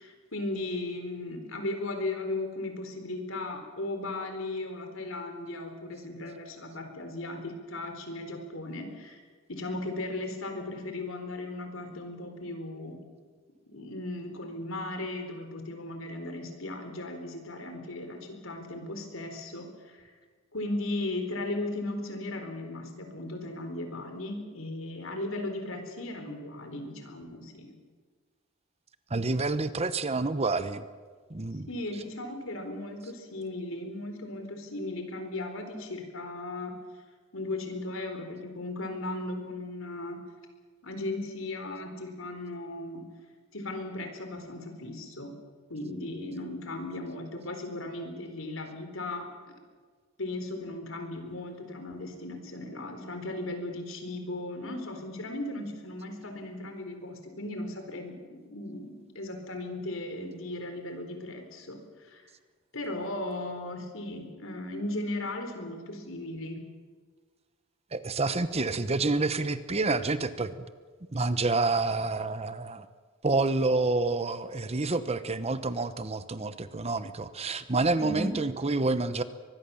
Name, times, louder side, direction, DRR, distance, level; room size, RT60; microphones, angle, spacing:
voice 1, 0.0-9.2 9.5-13.0 13.7-20.1 20.5-27.7 31.7-36.8 37.3-40.2 40.8-43.0 43.5-45.3 45.7-49.5 50.2-62.2 62.7-66.6 78.0-78.4, left 2 dB, 70° left, 6 dB, 4.2 m, -36 dB
voice 2, 29.1-30.8 31.3-31.7 67.9-70.5 71.1-72.9 73.2-79.2, right 3 dB, 30° right, 12 dB, 0.9 m, -28 dB
24.0 x 20.5 x 7.1 m, 1.5 s
head